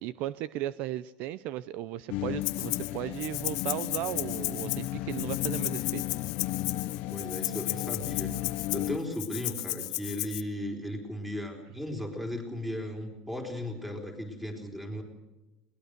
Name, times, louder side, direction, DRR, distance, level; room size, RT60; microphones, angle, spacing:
voice 1, 0.0-6.0, right 13 dB, 60° right, 17 dB, 0.6 m, -36 dB
sound 1, 2.1-9.0, left 15 dB, 60° left, 0.8 m, -34 dB
Rattle (instrument), 2.4-2.9 3.2-10.4, left 22 dB, 90° left, 1.1 m, -34 dB
voice 2, 7.1-8.3 8.7-15.0, left 1 dB, 5° right, 2 dB, 4.4 m, -36 dB
21.5 x 20.0 x 6.7 m, 1.0 s
cardioid pair, 155°, 3 cm